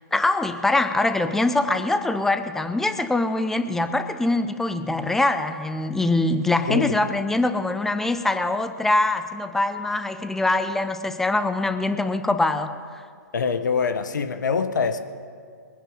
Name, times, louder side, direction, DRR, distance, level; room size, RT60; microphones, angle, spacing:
voice 1, 0.1-13.0, left 2 dB, 5° left, 10 dB, 0.6 m, -23 dB
voice 2, 13.3-15.0, left 5 dB, 80° left, 9 dB, 1.0 m, -24 dB
21.5 x 10.0 x 5.0 m, 2.1 s
hypercardioid pair, 145°, 10 cm